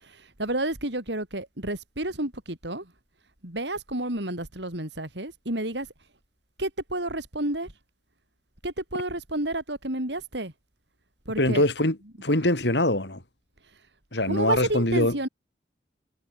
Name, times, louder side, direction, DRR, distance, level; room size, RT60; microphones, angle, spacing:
voice 1, 0.0-2.9 3.4-5.9 6.6-7.7 8.6-10.5 11.3-11.7 14.3-15.3, right 1 dB, 75° right, 5.7 m, -30 dB
voice 2, 11.4-13.2 14.1-15.2, left 1 dB, 75° left, 4.6 m, -23 dB
head